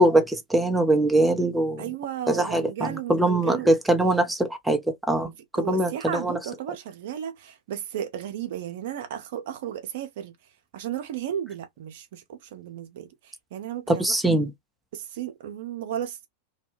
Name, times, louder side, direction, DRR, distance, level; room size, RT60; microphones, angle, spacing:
voice 1, 0.0-1.8 2.3-5.3 5.7-6.4 13.9-14.5, right 1 dB, 5° right, 0.5 m, -22 dB
voice 2, 1.8-3.7 5.2-10.4 10.7-14.2 14.9-16.3, right 10 dB, 55° right, 0.6 m, -34 dB
2.7 x 2.1 x 3.2 m
figure-of-eight pair, 90°, 0 cm